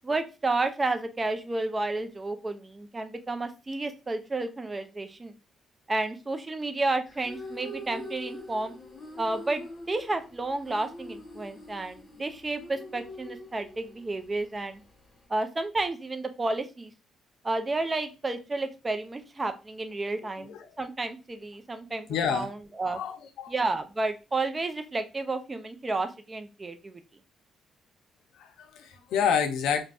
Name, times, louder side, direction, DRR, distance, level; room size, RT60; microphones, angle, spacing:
voice 1, 0.0-5.3 5.9-8.7 9.2-14.8 15.3-16.9 17.4-23.0 23.5-27.0, right 2 dB, 25° right, 0.4 m, -31 dB
sound 1, 7.1-15.3, left 1 dB, 30° left, 0.8 m, -44 dB
voice 2, 20.2-20.7 22.1-22.5 22.9-23.5 28.4-29.8, left 7 dB, 85° left, 0.5 m, -29 dB
2.5 x 2.1 x 3.3 m
cardioid pair, 90°, 0 cm